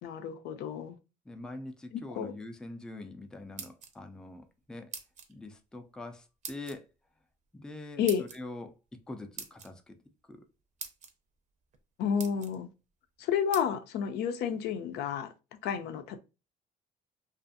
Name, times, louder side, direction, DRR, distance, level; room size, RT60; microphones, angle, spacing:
voice 1, 0.0-1.0 2.2-2.3 8.0-8.3 12.0-12.7 13.2-15.3 15.6-16.2, left 8 dB, 80° left, 0.5 m, -31 dB
voice 2, 1.3-4.9 5.3-6.9 7.5-10.0 10.3-10.5, left 2 dB, 5° left, 0.3 m, -44 dB
sound 1, 3.3-4.2 4.9-5.3 6.4-6.8 8.1-8.4 9.4-9.7 10.4-10.5 10.8-11.1 11.7-11.8 12.2-12.5 13.5-13.7, right 6 dB, 45° right, 0.6 m, -43 dB
2.5 x 2.4 x 2.5 m
cardioid pair, 110°, 17 cm